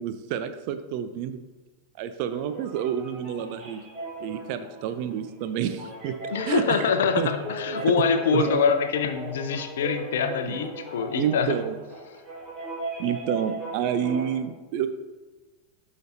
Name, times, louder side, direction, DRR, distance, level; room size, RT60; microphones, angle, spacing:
voice 1, 0.0-1.4 2.0-3.8 4.2-6.2 6.5-6.9 7.2-7.3 7.9-8.0 8.3-8.5 10.5-10.6 11.2-11.7 13.0-14.9, right 9 dB, 45° right, 10 dB, 0.5 m, -29 dB
sound 1, 2.2-14.3, right 2 dB, 20° right, 2.0 m, -37 dB
voice 2, 6.3-11.6, left 6 dB, 60° left, 8 dB, 0.7 m, -25 dB
11.5 x 5.1 x 2.8 m, 1.2 s
figure-of-eight pair, 90°, 0 cm